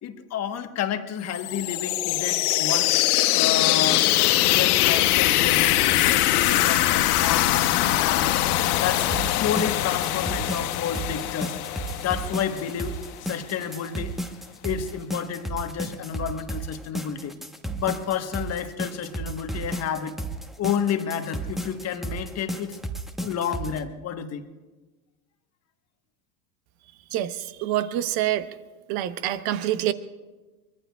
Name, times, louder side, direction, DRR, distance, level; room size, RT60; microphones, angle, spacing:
voice 1, 0.0-3.0 3.3-4.1 4.5-8.5 8.8-9.1 9.4-11.6 12.0-14.2 14.6-17.4 17.8-20.2 20.6-22.8 23.2-24.4, left 8 dB, 30° left, 8 dB, 1.3 m, -30 dB
sound 1, 1.3-13.0, left 15 dB, 65° left, 1.0 m, -22 dB
sound 2, 9.1-23.8, right 1 dB, ahead, 1.0 m, -33 dB
voice 2, 27.1-28.4 28.9-29.9, right 12 dB, 50° right, 12 dB, 1.1 m, -26 dB
24.0 x 22.0 x 2.4 m, 1.2 s
hypercardioid pair, 105°, 48 cm